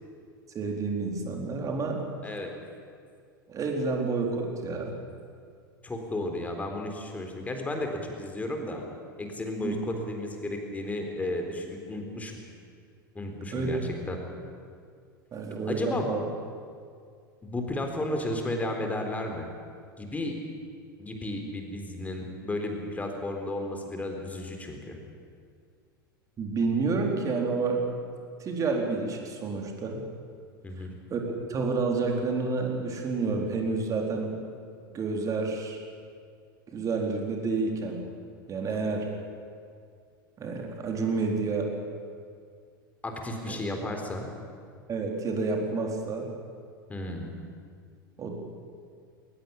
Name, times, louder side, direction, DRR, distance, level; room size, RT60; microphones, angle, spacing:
voice 1, 0.5-2.0 3.5-4.9 9.6-9.7 13.5-13.7 15.3-16.2 26.4-27.8 28.4-30.0 31.1-34.3 34.9-35.8 36.7-38.0 38.5-39.1 40.4-41.7 43.4-43.6 44.9-46.3 48.2-48.3, right 4 dB, 25° right, 1 dB, 4.3 m, -29 dB
voice 2, 5.8-8.8 9.2-12.4 13.1-14.2 15.7-16.1 17.4-19.5 20.0-20.4 21.0-25.0 30.6-30.9 43.0-44.3 46.9-47.3, left 1 dB, 10° left, 3 dB, 4.0 m, -33 dB
21.0 x 19.5 x 8.7 m, 2.2 s
figure-of-eight pair, 85°, 12 cm